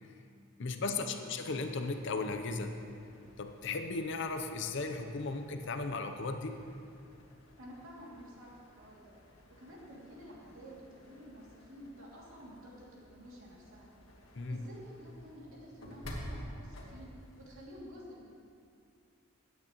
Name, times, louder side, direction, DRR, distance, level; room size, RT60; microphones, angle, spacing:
voice 1, 0.6-2.8 3.4-6.6 14.3-14.6, left 3 dB, 60° left, 6 dB, 0.6 m, -36 dB
sound 1, 1.6-17.8, equal, 75° left, 1.6 m, -52 dB
voice 2, 7.6-9.1 9.5-13.9 14.5-17.1 17.4-18.4, equal, 80° right, -4 dB, 2.5 m, -51 dB
16.5 x 8.6 x 3.0 m, 2.4 s
head